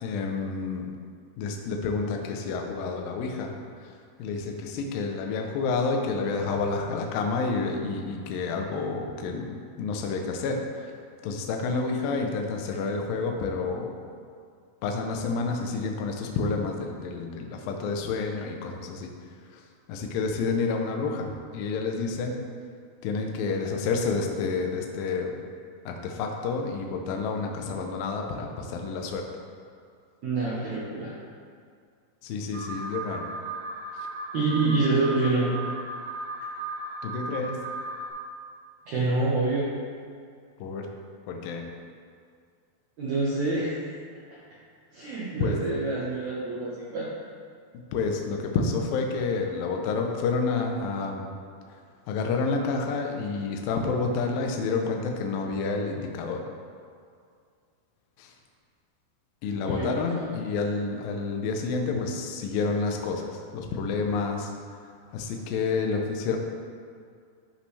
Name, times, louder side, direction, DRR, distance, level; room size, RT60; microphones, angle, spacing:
voice 1, 0.0-0.9 1.4-3.5 4.2-10.9 11.2-13.9 14.8-19.1 19.5-19.6 19.9-22.4 23.0-25.3 25.9-29.2 32.2-33.3 37.0-37.6 40.6-40.9 41.3-41.6 45.4-45.6 47.9-51.3 52.1-56.4 58.2-58.3 59.4-64.5 65.1-66.4, left 4 dB, 85° left, 2 dB, 2.0 m, -29 dB
voice 2, 30.2-31.1 34.3-35.5 38.9-39.7 43.0-44.0 44.9-47.1 59.6-60.3, right 3 dB, 85° right, -7 dB, 1.6 m, -27 dB
Alarm, 32.5-38.1, right 2 dB, 70° right, 3.5 m, -36 dB
13.5 x 5.3 x 3.3 m, 2.2 s
omnidirectional pair, 5.2 m